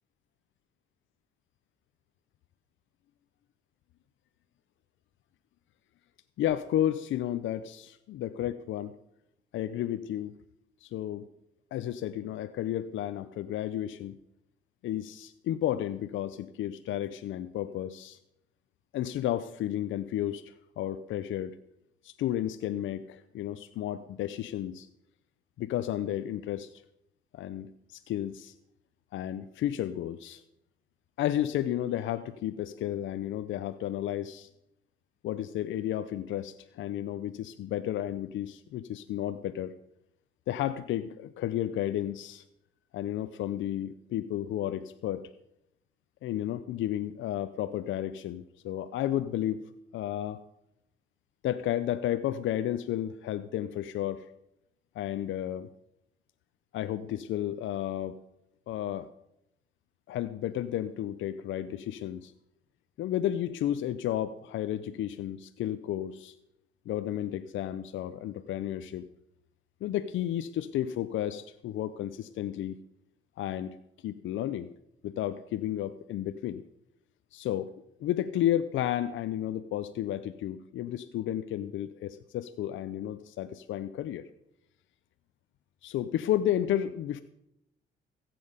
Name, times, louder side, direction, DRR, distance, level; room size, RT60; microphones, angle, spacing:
voice 1, 6.4-8.9 9.5-10.3 10.8-11.3 11.7-14.2 14.8-18.2 18.9-21.6 22.0-24.9 25.6-26.7 27.3-28.5 29.1-30.4 31.2-34.5 35.2-39.7 40.5-42.4 42.9-45.3 46.2-49.6 49.9-50.4 51.4-54.2 55.0-55.7 56.7-58.2 58.7-59.1 60.1-62.3 63.0-66.3 66.9-69.1 69.8-72.8 73.4-73.8 74.0-74.7 75.0-76.6 77.3-77.7 78.0-84.3 85.8-87.2, left 12 dB, 75° left, 11 dB, 0.6 m, -32 dB
15.0 x 7.7 x 5.1 m, 0.81 s
cardioid pair, 90°, 20 cm